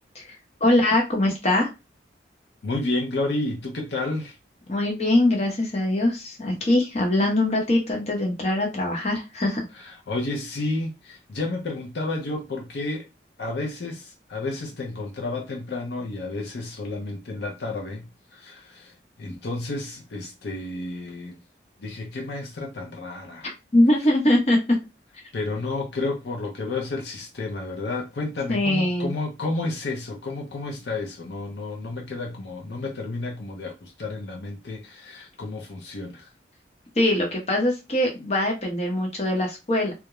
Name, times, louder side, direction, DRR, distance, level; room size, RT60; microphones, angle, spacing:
voice 1, 0.6-1.7 4.7-9.6 23.4-24.8 28.5-29.1 37.0-39.9, left 1 dB, 35° left, 0.8 m, -22 dB
voice 2, 2.6-4.4 9.7-13.1 13.4-18.9 19.2-21.4 21.8-23.5 25.3-36.3, left 2 dB, 70° left, 0.6 m, -31 dB
2.4 x 2.1 x 2.9 m
head